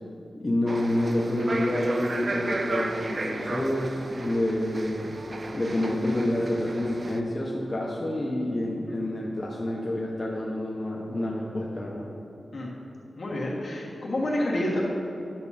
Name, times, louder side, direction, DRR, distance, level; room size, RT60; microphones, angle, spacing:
voice 1, 0.4-5.1 5.5-12.1, left 1 dB, 25° left, -4 dB, 0.8 m, -28 dB
sound 1, 0.7-7.2, right 2 dB, 35° right, 0.4 m, -34 dB
voice 2, 13.1-14.8, left 1 dB, 60° left, -4 dB, 1.6 m, -29 dB
10.5 x 6.1 x 4.2 m, 2.8 s
wide cardioid pair, 180°, 0 cm